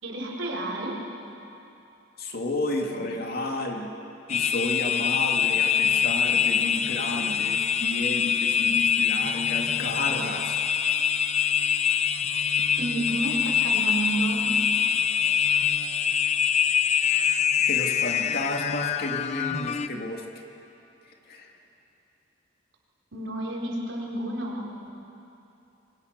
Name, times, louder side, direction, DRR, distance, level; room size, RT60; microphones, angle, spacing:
voice 1, 0.0-1.0 12.8-14.4 23.1-24.9, right 1 dB, 80° right, -1 dB, 4.4 m, -30 dB
voice 2, 2.2-3.9 4.3-10.6 14.9-15.0 17.7-20.4 21.1-21.5, left 2 dB, 50° left, 1 dB, 2.6 m, -32 dB
sound 1, 4.3-19.9, left 8 dB, 35° left, 0.7 m, -24 dB
28.0 x 23.5 x 6.8 m, 2.8 s
head